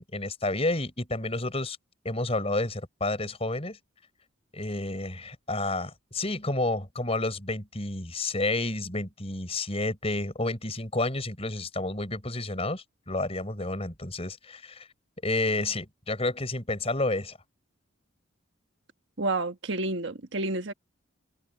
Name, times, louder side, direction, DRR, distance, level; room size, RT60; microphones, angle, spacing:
voice 1, 0.0-1.8 2.0-3.8 4.5-14.9 15.2-17.4, left 2 dB, 30° left, 4.9 m, -30 dB
voice 2, 19.2-20.7, right 2 dB, 60° right, 1.5 m, -29 dB
open air
head